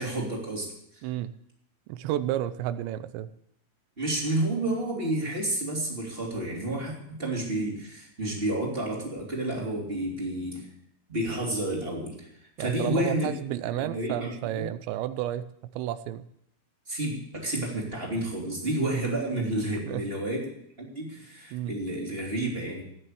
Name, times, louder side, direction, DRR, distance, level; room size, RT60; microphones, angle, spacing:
voice 1, 0.0-1.0 4.0-10.7 11.1-12.3 12.6-13.3 13.7-14.7 16.9-22.8, right 1 dB, 15° right, -2 dB, 2.8 m, -30 dB
voice 2, 1.0-1.3 1.9-3.3 12.6-16.3 19.9-20.0 21.5-21.8, right 12 dB, 80° right, 13 dB, 2.8 m, -31 dB
18.0 x 6.7 x 8.4 m, 0.73 s
omnidirectional pair, 5.1 m